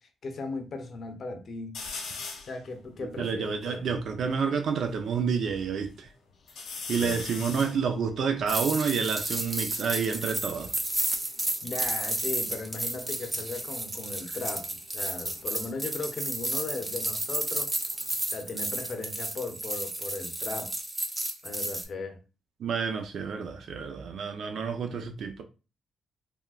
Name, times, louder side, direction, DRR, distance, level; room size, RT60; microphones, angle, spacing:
voice 1, 0.2-1.8 2.5-3.8 6.5-6.6 6.9-7.2 11.6-17.7 18.3-20.7 21.4-22.2, left 3 dB, 50° left, 0.7 m, -37 dB
sound 1, 1.7-2.6 3.1-3.2 3.4-5.0 5.5-6.1 6.5-9.9 10.8-12.7 13.0-13.5 15.0-17.7 18.0-18.8, left 4 dB, 80° left, 1.1 m, -43 dB
voice 2, 3.2-6.1 6.9-10.7 22.6-25.4, right 6 dB, 65° right, 0.4 m, -29 dB
sound 2, 8.5-21.8, right 1 dB, 15° right, 0.5 m, -32 dB
3.5 x 2.2 x 2.3 m
cardioid pair, 90°, 0 cm